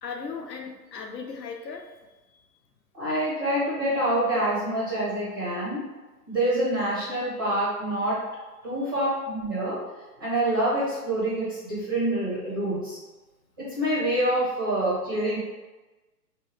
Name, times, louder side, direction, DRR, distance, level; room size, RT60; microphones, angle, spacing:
voice 1, 0.0-2.0 2.3-2.4, left 5 dB, 85° left, 3 dB, 0.8 m, -37 dB
voice 2, 2.9-5.8 6.3-8.2 8.6-9.8 10.2-13.0 13.6-15.4, right 1 dB, 15° right, -9 dB, 0.5 m, -26 dB
3.1 x 3.0 x 3.1 m, 1.2 s
hypercardioid pair, 145°, 48 cm